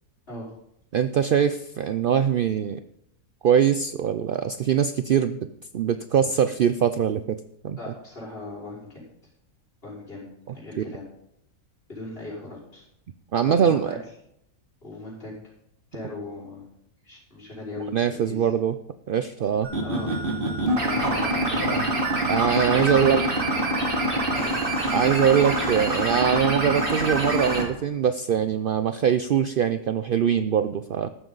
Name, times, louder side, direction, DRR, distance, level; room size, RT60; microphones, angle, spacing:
voice 1, 0.9-2.8 3.4-5.5 5.7-7.8 13.3-14.0 17.9-18.7 19.1-19.7 21.6-21.8 22.3-23.2 24.9-31.1, right 8 dB, 75° right, 11 dB, 0.4 m, -22 dB
voice 2, 7.8-9.0 9.8-11.1 11.9-12.8 13.4-14.0 14.8-15.3 15.9-16.6 17.0-18.5 19.8-20.2 20.8-22.0 22.7-23.2 24.3-24.7, left 2 dB, 40° left, -5 dB, 5.4 m, -38 dB
sound 1, 19.6-27.6, right 1 dB, 35° right, 2.6 m, -25 dB
14.0 x 12.5 x 4.0 m, 0.77 s
omnidirectional pair, 1.5 m